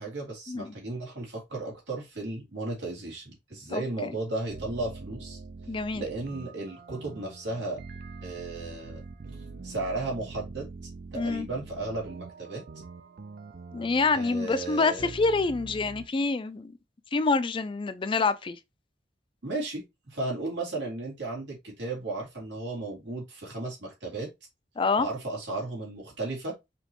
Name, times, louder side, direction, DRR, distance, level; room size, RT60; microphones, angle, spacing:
voice 1, 0.0-5.4 5.9-7.8 8.2-9.0 9.6-10.7 11.1-12.6 14.1-15.1 19.4-24.3 25.0-26.5, right 2 dB, 85° right, 2.6 m, -34 dB
voice 2, 3.7-4.1 5.7-6.0 11.1-11.5 13.7-16.7 17.1-18.6 24.8-25.1, left 4 dB, 30° left, 0.4 m, -27 dB
sound 1, 4.5-16.1, right 4 dB, 55° right, 0.5 m, -44 dB
5.0 x 3.0 x 2.9 m
head